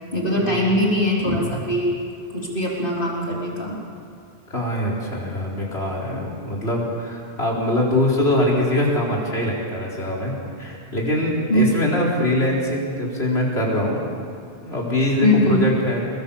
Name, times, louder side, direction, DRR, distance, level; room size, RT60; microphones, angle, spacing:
voice 1, 0.1-2.0 2.3-3.8 11.5-11.8 15.2-15.7, left 1 dB, 55° left, -3 dB, 4.1 m, -21 dB
voice 2, 4.5-14.1 14.6-16.0, left 1 dB, 85° left, -2 dB, 4.6 m, -23 dB
26.0 x 22.5 x 7.2 m, 2.5 s
omnidirectional pair, 1.1 m